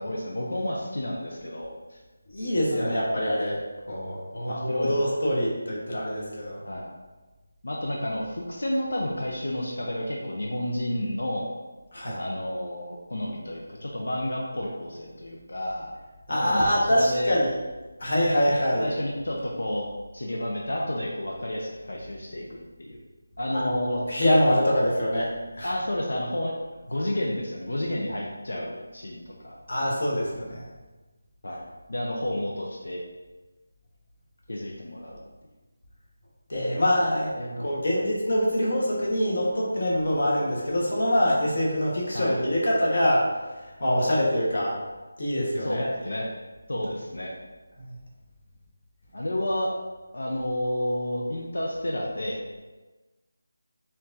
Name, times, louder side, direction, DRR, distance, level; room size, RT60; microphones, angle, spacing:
voice 1, 0.0-2.0 2.7-3.0 4.3-4.9 6.6-6.9 7.6-11.5 12.1-15.9 16.3-17.4 18.8-19.8 20.1-23.0 23.4-24.0 25.6-26.5 26.9-29.5 31.4-31.6 31.9-33.0 34.5-35.2 37.4-38.0 42.1-42.4 45.5-46.3 46.7-47.3 49.1-49.7 50.1-52.4, left 1 dB, 85° left, -2 dB, 0.7 m, -31 dB
voice 2, 2.3-3.6 3.9-4.2 4.5-6.6 11.9-12.2 16.3-17.5 18.0-18.9 23.5-25.7 29.7-30.7 36.5-43.3 43.8-44.8 45.2-46.2 47.8-48.0, equal, 50° left, -4 dB, 1.2 m, -24 dB
4.5 x 3.6 x 2.6 m, 1.2 s
figure-of-eight pair, 180°, 0 cm